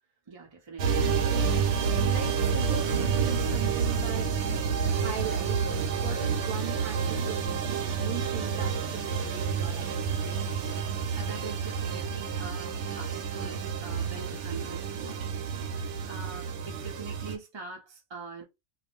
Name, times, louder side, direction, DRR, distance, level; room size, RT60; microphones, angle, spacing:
voice 1, 0.3-1.1 11.1-15.3 15.7-18.4, right 3 dB, 30° right, 0.6 m, -43 dB
sound 1, 0.8-17.4, right 6 dB, 80° right, 0.9 m, -29 dB
voice 2, 1.9-4.3 4.8-5.6 6.0-7.7 7.9-10.2, right 7 dB, 50° right, 0.9 m, -39 dB
2.4 x 2.0 x 3.0 m
omnidirectional pair, 1.2 m